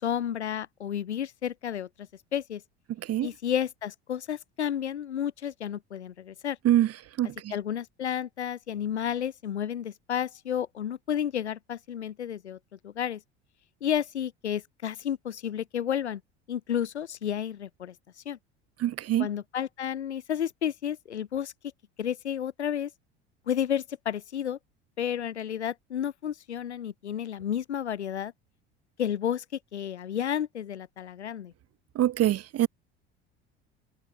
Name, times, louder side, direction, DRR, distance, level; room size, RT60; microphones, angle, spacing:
voice 1, 0.0-1.9 2.3-2.6 3.2-6.6 7.5-12.6 12.8-13.2 13.8-16.2 16.5-17.9 18.3-18.4 19.2-21.5 22.0-22.9 23.5-24.6 25.0-28.3 29.0-29.4 29.7-31.5, left 9 dB, 85° left, 5.8 m, -31 dB
voice 2, 7.2-7.5 18.8-19.3 32.0-32.7, right 12 dB, 45° right, 3.5 m, -24 dB
hypercardioid pair, 70°, 33 cm